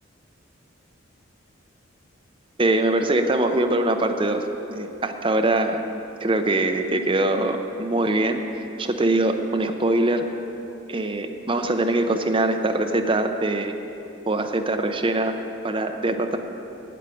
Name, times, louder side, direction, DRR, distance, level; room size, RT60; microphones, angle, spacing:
voice 1, 2.6-4.4 4.8-5.8 6.2-8.4 8.8-10.3 10.9-13.7 14.3-15.4 15.6-16.4, right 2 dB, 25° right, 6 dB, 0.6 m, -22 dB
8.9 x 8.5 x 8.4 m, 3.0 s
head